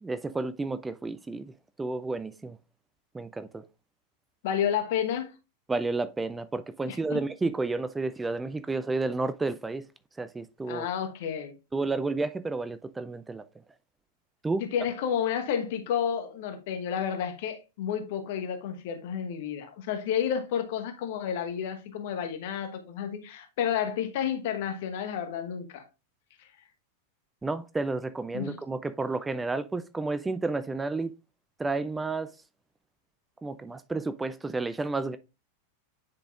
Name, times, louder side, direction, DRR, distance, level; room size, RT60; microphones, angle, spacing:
voice 1, 0.0-1.5 1.8-2.6 3.1-3.6 5.7-9.8 10.2-10.9 11.7-13.4 14.4-14.6 27.4-31.1 31.6-32.3 33.4-35.2, right 3 dB, 10° right, 0.4 m, -31 dB
voice 2, 4.4-5.3 6.9-7.3 10.7-11.5 14.6-25.8 28.3-28.6, left 8 dB, 50° left, 1.1 m, -31 dB
9.7 x 4.0 x 2.4 m
figure-of-eight pair, 90°, 0 cm